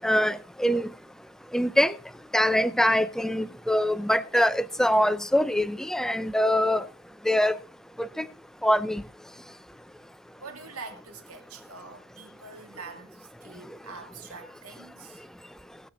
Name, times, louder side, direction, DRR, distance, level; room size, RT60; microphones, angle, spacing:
voice 1, 0.0-0.9 1.5-1.9 2.3-6.9 7.3-7.6 8.0-8.3 8.6-9.0, equal, ahead, 0.5 m, -23 dB
voice 2, 10.4-15.3, right 4 dB, 80° right, 2.3 m, -44 dB
20.5 x 7.6 x 3.8 m
head